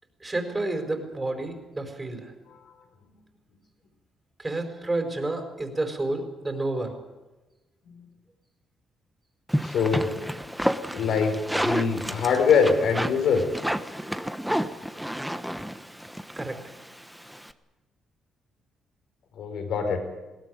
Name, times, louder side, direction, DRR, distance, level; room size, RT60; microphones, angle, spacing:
voice 1, 0.2-2.3 4.4-6.9 16.4-16.6, right 2 dB, 20° right, 5 dB, 4.7 m, -30 dB
sound 1, 9.5-17.5, equal, ahead, 1.2 m, -30 dB
voice 2, 9.6-10.1 10.9-11.4 11.6-13.4 19.4-20.0, left 6 dB, 75° left, 5 dB, 5.0 m, -23 dB
21.0 x 17.5 x 9.6 m, 1.1 s
cardioid pair, 90°, 0 cm